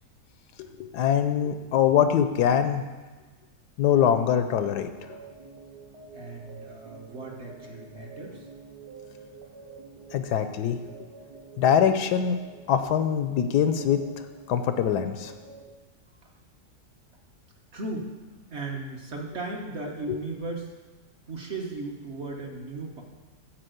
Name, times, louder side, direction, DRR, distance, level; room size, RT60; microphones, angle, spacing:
voice 1, 0.8-2.8 3.8-4.9 10.1-10.8 11.6-12.4 12.7-14.0 14.5-15.3 20.1-20.2, left 8 dB, 75° left, 9 dB, 1.1 m, -23 dB
sound 1, 3.9-15.6, right 4 dB, 70° right, 1.8 m, -47 dB
voice 2, 6.1-8.5 17.7-18.1 18.5-20.7 21.3-23.0, right 3 dB, 45° right, 0 dB, 1.2 m, -36 dB
8.8 x 5.0 x 7.8 m, 1.3 s
omnidirectional pair, 1.9 m